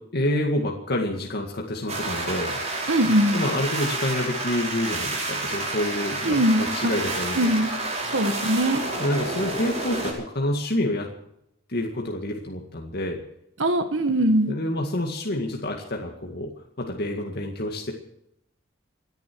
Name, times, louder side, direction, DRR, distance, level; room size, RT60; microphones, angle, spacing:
voice 1, 0.0-2.6 3.3-7.6 9.0-11.1 11.7-13.2 14.4-16.5 16.8-17.9, left 1 dB, 55° left, 1 dB, 2.1 m, -28 dB
sound 1, 1.9-10.1, right 2 dB, 35° right, 5.0 m, -29 dB
voice 2, 2.9-3.4 6.2-6.9 7.4-7.7 8.0-8.8 13.6-14.5, right 1 dB, 70° right, 7 dB, 1.5 m, -21 dB
28.5 x 10.5 x 4.7 m, 0.80 s
head